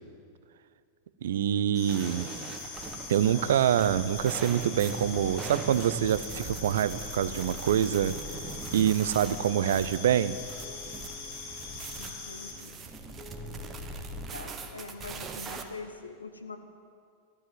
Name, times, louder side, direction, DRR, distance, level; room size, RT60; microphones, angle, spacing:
voice 1, 1.2-2.3 3.1-8.2 8.7-10.4, right 10 dB, 60° right, 16 dB, 0.5 m, -25 dB
sound 1, 1.7-12.5, left 4 dB, 40° left, 4.7 m, -42 dB
sound 2, 1.9-15.6, right 4 dB, 25° right, 1.3 m, -41 dB
Piano, 4.7-15.1, left 5 dB, 20° left, 0.9 m, -51 dB
voice 2, 12.0-12.8 14.3-16.6, left 3 dB, 80° left, 7 dB, 1.2 m, -44 dB
13.5 x 12.0 x 7.8 m, 2.3 s
figure-of-eight pair, 90°, 0 cm